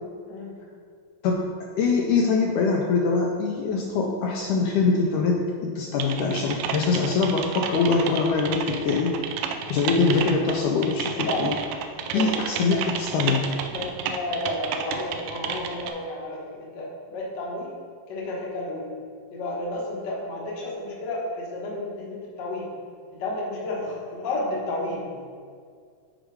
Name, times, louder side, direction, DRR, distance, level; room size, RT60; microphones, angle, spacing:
voice 1, 1.8-9.1 9.7-11.5 12.1-13.5, left 4 dB, 80° left, 0 dB, 1.9 m, -23 dB
Typing, 6.0-15.9, right 7 dB, 80° right, 1.9 m, -31 dB
voice 2, 11.2-11.5 12.0-12.3 13.7-17.7 18.1-18.9 19.3-22.7 23.1-25.1, left 2 dB, 55° left, -4 dB, 1.3 m, -31 dB
6.5 x 5.0 x 4.7 m, 2.1 s
omnidirectional pair, 3.9 m